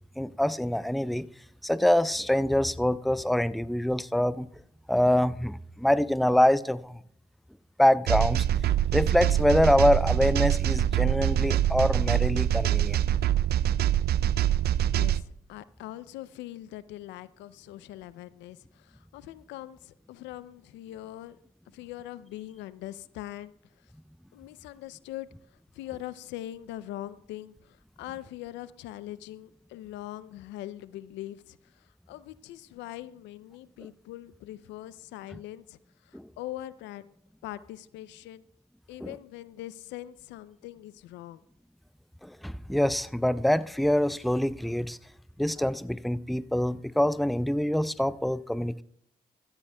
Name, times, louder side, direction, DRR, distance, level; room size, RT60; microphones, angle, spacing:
voice 1, 0.2-1.3 1.6-4.5 4.9-7.0 7.8-8.5 8.9-13.0 36.1-36.3 39.0-39.1 42.2-45.0 45.4-48.8, left 1 dB, ahead, 0.6 m, -25 dB
sound 1, 8.1-15.2, right 11 dB, 60° right, 0.4 m, -24 dB
voice 2, 14.9-21.4 21.7-23.5 24.3-25.3 25.7-37.0 37.4-38.5 38.9-41.4, left 14 dB, 80° left, 0.5 m, -42 dB
16.0 x 14.0 x 2.2 m
hypercardioid pair, 45°, 18 cm